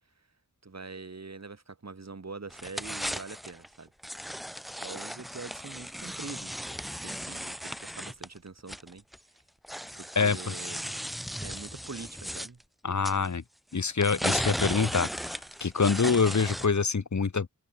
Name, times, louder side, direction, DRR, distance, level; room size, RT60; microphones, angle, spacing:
voice 1, 0.6-3.9 4.7-9.0 9.9-10.9 11.4-12.6, right 4 dB, 55° right, 1.8 m, -44 dB
sound 1, 2.5-3.7 4.0-9.2 9.6-12.5 13.0-13.3 13.9-16.8, equal, ahead, 0.3 m, -36 dB
voice 2, 12.8-13.4 13.7-17.5, left 5 dB, 65° left, 1.2 m, -26 dB
wide cardioid pair, 65°, 31 cm